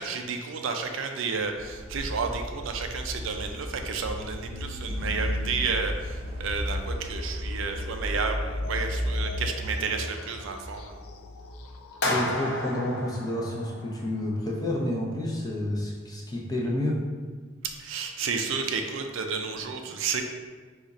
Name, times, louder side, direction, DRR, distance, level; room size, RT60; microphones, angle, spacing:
voice 1, 0.0-11.0 17.6-20.2, right 5 dB, 60° right, 4 dB, 0.4 m, -31 dB
sound 1, 1.4-12.2, left 1 dB, 25° right, 0.7 m, -34 dB
sound 2, 4.5-13.1, left 2 dB, 85° left, 0.4 m, -45 dB
sound 3, 12.0-14.2, left 1 dB, 50° left, 0.7 m, -31 dB
voice 2, 12.0-17.0, left 1 dB, 20° left, -3 dB, 0.6 m, -29 dB
5.0 x 2.4 x 4.0 m, 1.5 s
head